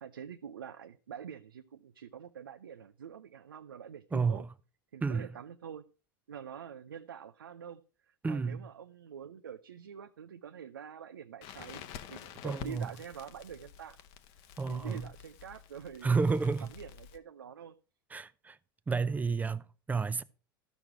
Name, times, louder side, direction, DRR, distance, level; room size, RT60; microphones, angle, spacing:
voice 1, 0.0-4.4 4.9-5.9 6.3-7.8 8.1-14.0 14.7-16.3 16.7-17.7, right 8 dB, 80° right, 0.5 m, -46 dB
voice 2, 4.1-4.5 5.0-5.3 8.2-8.7 12.4-12.9 14.6-15.1 16.0-16.7 18.1-18.6 18.9-20.2, right 4 dB, 15° right, 0.6 m, -31 dB
Crackle, 11.4-17.2, left 9 dB, 50° left, 0.9 m, -49 dB
13.5 x 6.1 x 4.8 m
hypercardioid pair, 85°, 11 cm